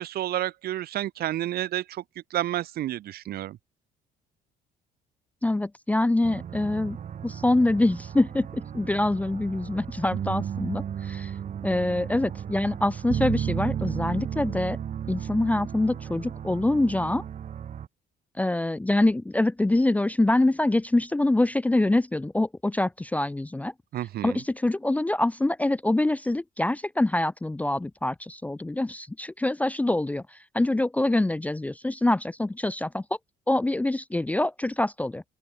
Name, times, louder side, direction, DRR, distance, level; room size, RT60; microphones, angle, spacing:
voice 1, 0.0-2.0 2.3-3.6 23.9-24.4, right 13 dB, 65° right, 2.0 m, -30 dB
voice 2, 5.4-7.0 7.2-11.3 11.6-14.8 15.1-17.2 18.4-23.7 24.2-33.0 33.5-35.2, left 2 dB, 10° left, 0.5 m, -25 dB
sound 1, 6.2-17.9, right 8 dB, 50° right, 4.1 m, -34 dB
open air
cardioid pair, 110°, 17 cm